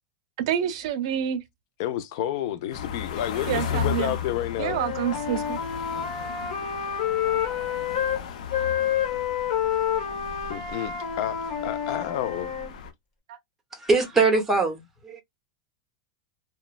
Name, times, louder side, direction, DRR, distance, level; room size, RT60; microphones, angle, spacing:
voice 1, 0.4-1.4 3.4-4.1 4.6-5.6 13.3-13.4, right 10 dB, 55° right, 0.5 m, -28 dB
voice 2, 1.8-4.8 10.5-11.4 11.6-12.5, left 11 dB, 45° left, 0.4 m, -30 dB
sound 1, 2.7-12.9, left 7 dB, 90° left, 0.6 m, -36 dB
Wind instrument woodwind instrument, 4.6-8.2 8.5-12.7, left 9 dB, 70° left, 1.3 m, -28 dB
voice 3, 13.7-15.2, right 3 dB, 5° right, 0.6 m, -22 dB
2.9 x 2.1 x 2.2 m
supercardioid pair, 175°, 4 cm